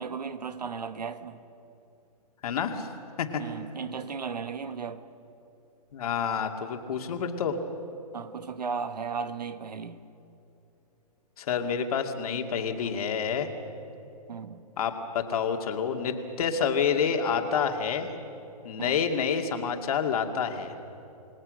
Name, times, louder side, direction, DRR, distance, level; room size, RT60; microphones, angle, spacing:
voice 1, 0.0-1.4 3.4-5.0 8.1-10.0 14.3-14.6 18.8-19.0, right 5 dB, 85° right, 12 dB, 1.4 m, -35 dB
voice 2, 2.4-2.9 3.2-3.4 5.9-7.6 11.4-13.5 14.8-18.1 18.6-20.8, left 6 dB, 65° left, 5 dB, 2.5 m, -28 dB
29.0 x 19.0 x 6.5 m, 2.7 s
hypercardioid pair, 130°, 20 cm